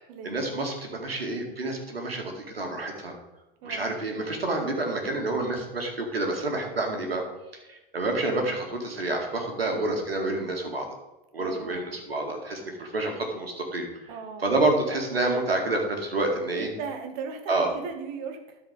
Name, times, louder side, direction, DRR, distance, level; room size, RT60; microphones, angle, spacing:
voice 1, 0.0-3.2 3.6-7.3 7.7-10.9 11.3-14.1 14.4-16.7 17.5-17.7, right 2 dB, 90° right, 2 dB, 2.2 m, -28 dB
voice 2, 3.6-3.9 9.6-9.9 11.4-11.9 14.1-14.5 16.6-18.6, right 5 dB, 50° right, 5 dB, 2.0 m, -38 dB
13.0 x 5.1 x 5.2 m, 1.0 s
hypercardioid pair, 100°, 29 cm